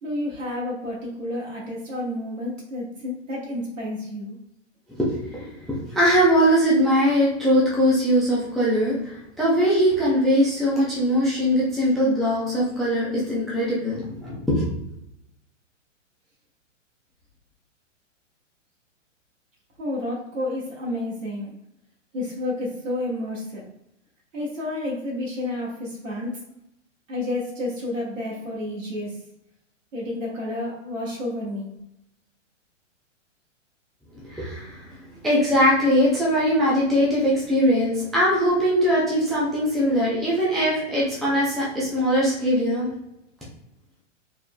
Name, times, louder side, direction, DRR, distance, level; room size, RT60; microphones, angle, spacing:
voice 1, 0.0-4.4 19.8-21.5 22.1-23.6 24.3-26.4 27.1-29.2 29.9-31.7, left 1 dB, 75° right, -4 dB, 1.2 m, -30 dB
voice 2, 5.7-14.7 34.1-34.9 35.2-42.9, equal, ahead, -7 dB, 0.4 m, -21 dB
4.0 x 3.3 x 2.2 m, 0.82 s
hypercardioid pair, 120°, 38 cm